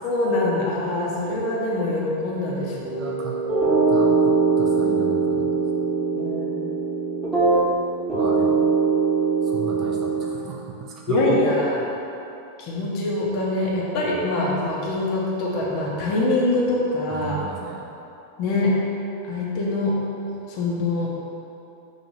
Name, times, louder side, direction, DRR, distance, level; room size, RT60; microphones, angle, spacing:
voice 1, 0.0-2.9 6.2-6.5 11.1-11.9 12.6-17.3 18.4-18.7 19.3-19.9 20.5-21.1, left 2 dB, 40° left, -4 dB, 0.8 m, -24 dB
voice 2, 2.7-3.4 3.9-5.5 8.1-8.7 9.5-11.4 17.1-17.9, right 5 dB, 35° right, -2 dB, 0.5 m, -35 dB
sound 1, 2.8-7.8 8.1-10.2, right 4 dB, 10° right, 1.2 m, -21 dB
3.2 x 2.6 x 4.0 m, 2.7 s
figure-of-eight pair, 90°, 0 cm